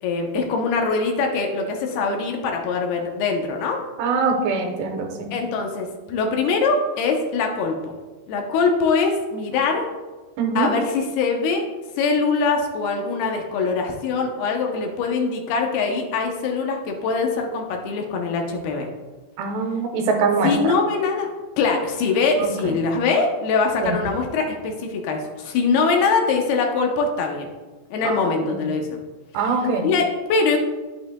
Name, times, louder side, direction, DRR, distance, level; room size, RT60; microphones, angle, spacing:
voice 1, 0.0-3.8 5.3-7.9 8.3-9.9 10.6-11.6 12.0-18.9 20.4-21.3 21.6-27.5 27.9-29.0 29.8-30.6, left 4 dB, 75° left, 2 dB, 2.6 m, -22 dB
voice 2, 4.0-5.3 10.4-10.7 19.4-20.7 22.4-22.7 23.8-24.0 28.0-28.2 28.5-28.7 29.3-29.9, right 4 dB, 85° right, 3 dB, 3.1 m, -23 dB
10.5 x 8.7 x 2.2 m, 1.3 s
omnidirectional pair, 4.8 m